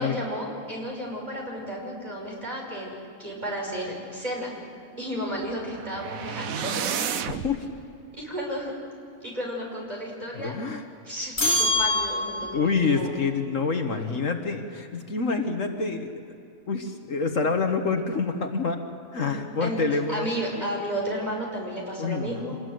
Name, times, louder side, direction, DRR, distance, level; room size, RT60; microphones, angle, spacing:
voice 1, 0.0-4.5 5.0-6.8 7.1-7.2 8.1-8.7 9.2-10.5 11.1-13.1 19.6-19.8 20.1-22.6, equal, 30° right, -2 dB, 6.0 m, -32 dB
sound 1, 5.4-7.6, right 8 dB, 70° right, 1.3 m, -31 dB
voice 2, 7.3-7.7 10.4-10.8 11.4-11.6 12.4-16.4 16.7-18.8 19.1-20.3 22.0-22.6, left 4 dB, 60° left, 5 dB, 1.7 m, -27 dB
sound 2, 11.4-12.7, left 1 dB, 45° left, 3.4 m, -24 dB
26.5 x 20.0 x 7.8 m, 2.6 s
omnidirectional pair, 1.5 m